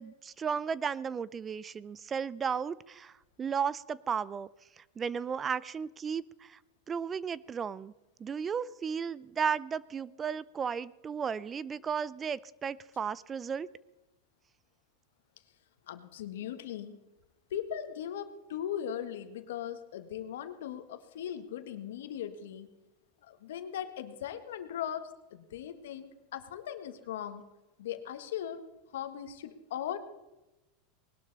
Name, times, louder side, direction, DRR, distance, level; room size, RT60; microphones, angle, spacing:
voice 1, 0.0-3.1 3.4-4.5 4.8-6.6 6.9-7.9 8.2-13.7, right 6 dB, 25° right, 21 dB, 0.4 m, -34 dB
voice 2, 15.9-17.0 17.5-22.7 23.3-27.4 27.8-28.6 28.9-30.0, left 10 dB, 85° left, 9 dB, 1.5 m, -39 dB
20.0 x 12.0 x 4.1 m, 1.0 s
supercardioid pair, 130°, 0 cm